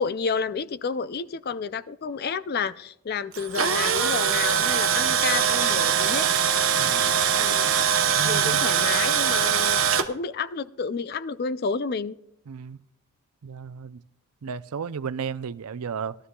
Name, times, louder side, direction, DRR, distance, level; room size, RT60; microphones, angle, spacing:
voice 1, 0.0-6.3 7.4-7.7 8.2-9.8 10.1-12.2, left 5 dB, 45° left, 0.4 m, -30 dB
Tools, 3.3-10.0, right 7 dB, 60° right, 0.9 m, -22 dB
voice 2, 6.8-7.1 8.2-8.8 12.5-12.8 13.4-14.0 14.4-16.2, right 6 dB, 85° right, 0.5 m, -33 dB
19.0 x 12.5 x 2.3 m
head